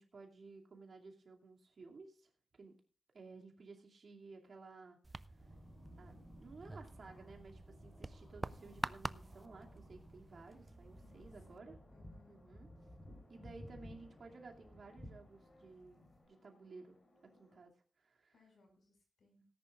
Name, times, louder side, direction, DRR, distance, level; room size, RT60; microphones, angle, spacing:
voice 1, 0.0-2.3 2.6-2.8 3.1-5.0 5.3-5.5 6.0-11.7 12.3-12.7 13.3-17.0 17.4-18.3, right 3 dB, 55° right, 1 dB, 2.4 m, -56 dB
sound 1, 5.0-11.6, right 2 dB, 25° right, 0.4 m, -48 dB
sound 2, 5.3-16.2, left 1 dB, 20° left, 3.3 m, -57 dB
sound 3, 10.3-17.6, left 1 dB, 40° left, 3.0 m, -69 dB
voice 2, 11.0-12.4 18.3-19.5, left 2 dB, 70° left, 3 dB, 5.6 m, -67 dB
18.5 x 10.5 x 2.4 m, 0.39 s
wide cardioid pair, 130°, 0 cm